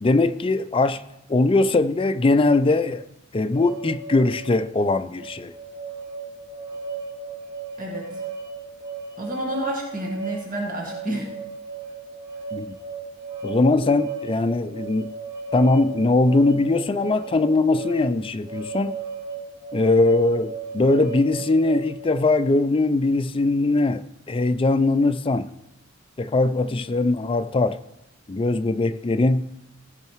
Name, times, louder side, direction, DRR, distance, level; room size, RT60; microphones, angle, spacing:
voice 1, 0.0-1.0 1.3-3.0 3.3-5.5 12.5-12.8 13.4-15.1 15.5-19.0 19.7-24.0 24.3-25.5 26.2-27.8 28.3-29.5, left 2 dB, 25° left, 0.4 m, -21 dB
sound 1, 3.5-22.3, right 4 dB, 15° right, 1.2 m, -35 dB
voice 2, 7.8-8.2 9.2-11.3, right 1 dB, 45° right, 1.8 m, -30 dB
16.0 x 5.6 x 4.6 m
head